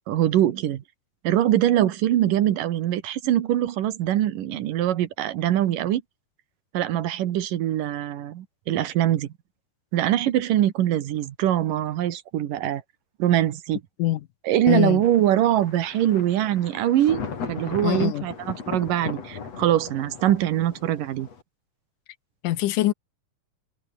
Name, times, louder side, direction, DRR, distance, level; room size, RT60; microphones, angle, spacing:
voice 1, 0.1-0.8 1.2-6.0 6.7-9.3 9.9-12.8 13.2-13.8 14.4-17.2 17.5-21.3, right 12 dB, 85° right, 3.0 m, -23 dB
voice 2, 14.7-15.0 17.8-18.3 22.4-22.9, left 15 dB, 75° left, 2.5 m, -23 dB
Thunder, 15.0-21.4, left 5 dB, 50° left, 4.5 m, -37 dB
omnidirectional pair, 3.8 m